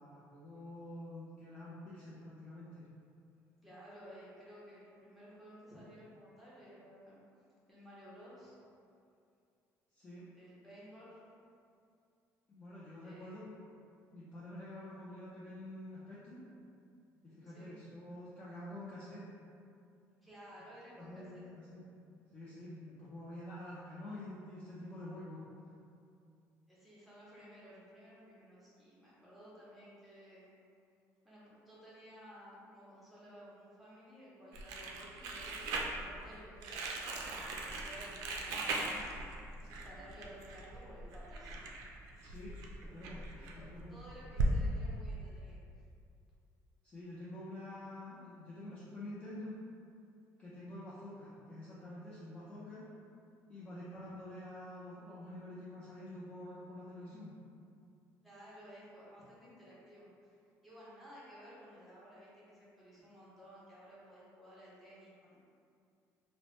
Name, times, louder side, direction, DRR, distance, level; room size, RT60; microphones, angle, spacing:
voice 1, 0.0-2.9 9.9-10.3 12.5-13.5 14.1-16.4 17.2-19.3 21.0-21.9 22.3-25.4 42.2-44.0 46.8-49.6 50.4-52.9 53.5-57.3, left 1 dB, 20° left, -10 dB, 0.4 m, -48 dB
voice 2, 3.6-7.2 7.7-8.5 10.3-11.2 13.0-13.5 17.4-17.8 20.2-21.4 26.7-30.5 31.2-37.1 37.6-39.0 39.7-41.6 43.5-43.6 43.9-45.8 58.2-65.4, equal, ahead, -9 dB, 0.8 m, -55 dB
Crumpling crinkling, 34.5-44.5, right 2 dB, 80° right, 0.3 m, -39 dB
2.9 x 2.0 x 3.0 m, 2.4 s
cardioid pair, 145°, 6 cm